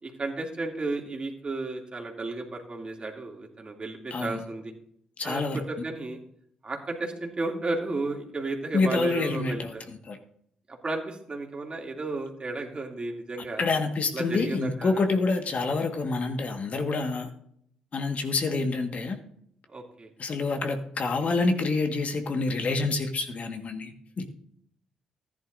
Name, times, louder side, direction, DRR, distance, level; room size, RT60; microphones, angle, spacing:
voice 1, 0.0-4.7 5.2-6.2 6.6-9.8 10.7-13.7 14.1-15.0 19.7-20.1, right 2 dB, 35° right, 1 dB, 2.7 m, -33 dB
voice 2, 4.1-4.4 5.2-5.6 8.7-10.2 13.6-17.3 17.9-19.2 20.2-24.3, left 3 dB, 55° left, 5 dB, 1.7 m, -27 dB
14.5 x 10.5 x 2.7 m, 0.69 s
supercardioid pair, 50°, 3 cm